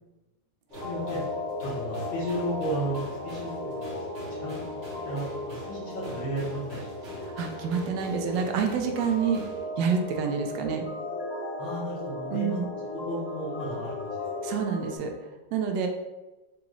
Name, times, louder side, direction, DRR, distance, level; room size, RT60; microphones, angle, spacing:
sound 1, 0.7-15.0, left 2 dB, 55° left, 1.4 m, -36 dB
sound 2, 0.7-9.6, equal, 45° right, 1.0 m, -46 dB
voice 1, 0.8-1.2 1.6-3.9 4.4-4.6 5.0-7.2 11.6-12.6 12.9-14.2, right 1 dB, 80° left, -8 dB, 1.7 m, -34 dB
voice 2, 7.2-9.4 9.8-10.8 12.3-12.7 14.4-15.1 15.5-15.9, right 6 dB, 75° right, 4 dB, 1.2 m, -28 dB
4.9 x 2.4 x 3.0 m, 1.1 s
omnidirectional pair, 2.0 m